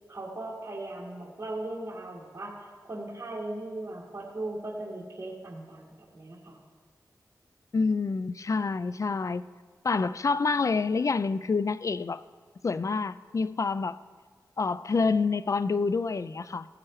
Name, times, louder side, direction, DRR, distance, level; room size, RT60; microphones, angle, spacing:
voice 1, 0.1-6.6, right 2 dB, 40° right, -4 dB, 1.9 m, -38 dB
voice 2, 7.7-9.4 9.8-12.2 12.6-14.0 14.6-16.7, left 4 dB, 50° left, 16 dB, 0.4 m, -27 dB
16.5 x 8.6 x 3.2 m, 1.5 s
cardioid pair, 55°, 7 cm